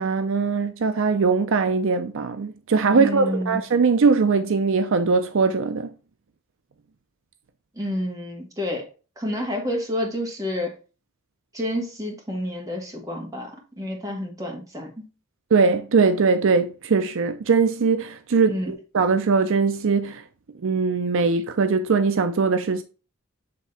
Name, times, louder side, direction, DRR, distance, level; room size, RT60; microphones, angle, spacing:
voice 1, 0.0-5.9 15.5-20.2 20.6-22.8, right 4 dB, 65° right, 0.5 m, -21 dB
voice 2, 2.9-3.6 7.7-8.9 9.2-10.8 11.5-13.5 13.8-15.1 18.5-18.7, left 1 dB, 15° right, 2.0 m, -29 dB
7.6 x 3.6 x 4.1 m
head